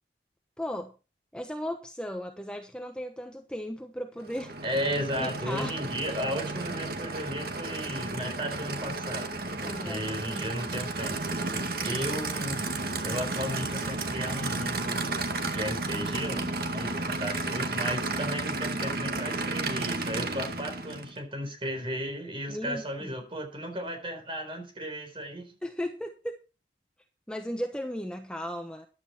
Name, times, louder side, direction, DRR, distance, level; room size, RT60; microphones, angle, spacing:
voice 1, 0.6-0.9 1.3-4.5 5.2-5.8 9.6-10.1 22.5-23.1 25.6-26.4 27.3-28.9, equal, 5° left, 4 dB, 1.0 m, -36 dB
Aircraft / Idling, 4.2-21.2, right 3 dB, 55° right, 1.9 m, -32 dB
voice 2, 4.6-9.3 9.6-12.7 13.0-25.5, equal, 30° right, 5 dB, 4.1 m, -35 dB
14.5 x 11.0 x 4.3 m, 0.32 s
head